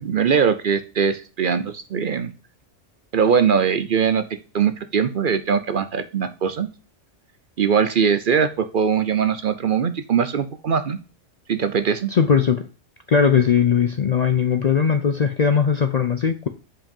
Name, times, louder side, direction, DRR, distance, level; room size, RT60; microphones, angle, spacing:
voice 1, 0.0-2.3 3.1-4.2 4.5-6.7 7.6-11.0 11.5-12.1, right 7 dB, 55° right, 0.7 m, -21 dB
voice 2, 12.1-12.6 13.1-16.5, left 6 dB, 55° left, 0.5 m, -19 dB
5.2 x 5.0 x 5.3 m
omnidirectional pair, 1.2 m